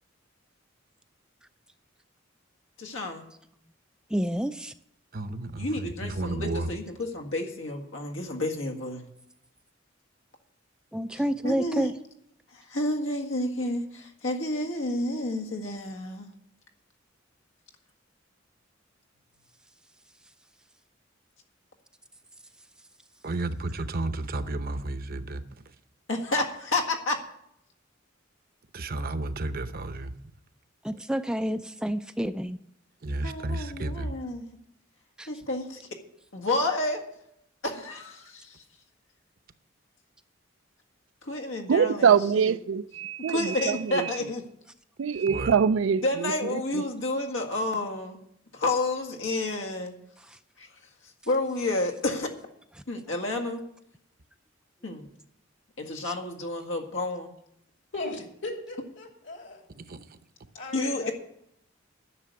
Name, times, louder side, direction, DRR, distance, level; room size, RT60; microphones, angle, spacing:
voice 1, 2.8-3.3 5.6-9.0 11.4-11.9 12.5-16.3 26.1-27.2 33.2-34.4 35.3-35.9 36.3-37.0 37.6-38.6 41.2-42.5 43.3-44.4 46.0-48.2 48.5-49.9 50.6-50.7 51.3-52.3 52.9-53.6 54.8-55.1 55.8-57.3 60.7-61.1, left 2 dB, 85° left, 1.9 m, -30 dB
voice 2, 4.1-4.7 10.9-11.9 30.8-32.6 35.2-35.3 56.0-56.1, equal, 5° right, 0.3 m, -29 dB
voice 3, 5.1-6.7 23.2-25.4 28.7-30.1 33.0-34.1 45.3-45.5 59.8-60.0, right 2 dB, 50° right, 0.8 m, -32 dB
voice 4, 41.7-44.1 45.0-46.8, right 7 dB, 75° right, 0.4 m, -24 dB
voice 5, 57.9-59.6 60.5-61.1, left 2 dB, 65° left, 3.0 m, -37 dB
11.0 x 6.7 x 9.4 m
head